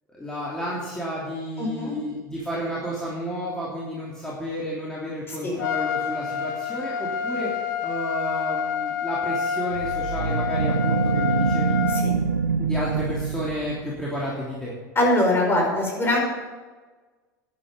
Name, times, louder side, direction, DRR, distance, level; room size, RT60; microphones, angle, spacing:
voice 1, 0.1-7.5 7.8-11.7 12.6-14.7, equal, 5° left, -6 dB, 3.2 m, -31 dB
voice 2, 1.6-2.0 5.3-5.6 12.0-12.2 14.9-16.2, left 1 dB, 25° left, 0 dB, 5.0 m, -22 dB
Trumpet, 5.6-12.1, left 7 dB, 70° left, 0.8 m, -28 dB
sound 1, 9.7-14.1, right 5 dB, 90° right, 0.6 m, -25 dB
12.5 x 10.5 x 5.3 m, 1.3 s
figure-of-eight pair, 80°, 10 cm